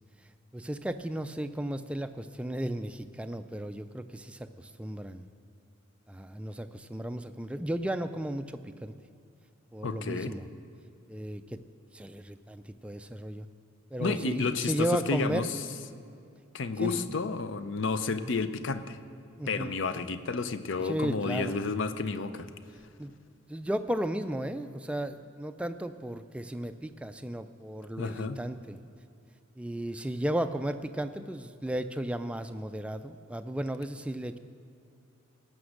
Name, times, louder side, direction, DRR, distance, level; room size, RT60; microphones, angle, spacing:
voice 1, 0.5-5.3 6.1-8.9 9.7-10.5 11.1-11.6 11.9-13.5 13.9-15.9 16.8-17.2 18.1-18.3 19.4-19.8 20.8-21.7 23.0-23.1 23.5-28.8 29.6-34.4, right 1 dB, 5° right, 9 dB, 0.3 m, -34 dB
voice 2, 9.8-10.3 14.0-15.6 16.5-19.0 19.5-22.5 28.0-28.4, left 4 dB, 60° left, 11 dB, 0.6 m, -31 dB
17.5 x 6.1 x 6.5 m, 2.5 s
head